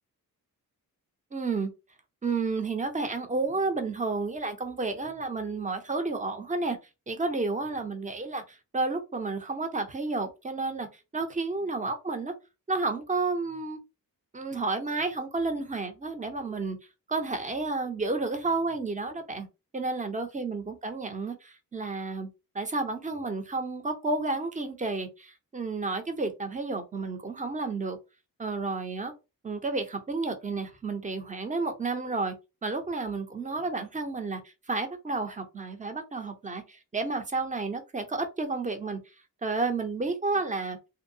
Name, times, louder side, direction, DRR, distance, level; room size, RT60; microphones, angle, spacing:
voice 1, 1.3-1.7 2.2-6.8 7.1-10.9 11.1-12.3 12.7-13.8 14.3-16.8 17.1-19.5 19.7-22.3 22.5-28.0 28.4-29.1 29.4-32.3 32.6-34.4 34.7-39.0 39.4-40.8, right 3 dB, 20° right, 0.5 m, -31 dB
2.6 x 2.2 x 2.7 m
wide cardioid pair, 100°, 37 cm